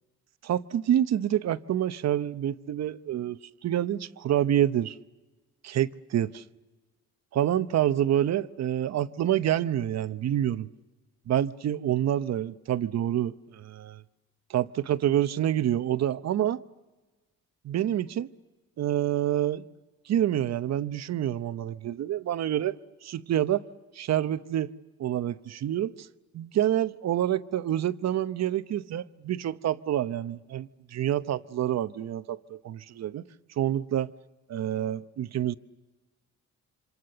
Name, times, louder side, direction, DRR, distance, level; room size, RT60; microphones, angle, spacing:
voice 1, 0.4-5.0 5.6-6.4 7.3-10.7 11.3-14.0 14.5-16.6 17.6-18.3 18.8-19.7 20.1-23.6 23.9-24.7 25.0-26.1 26.3-33.2 33.6-34.1 34.5-35.5, right 11 dB, 60° right, 0.8 m, -27 dB
27.5 x 25.5 x 6.8 m
cardioid pair, 90°, 30 cm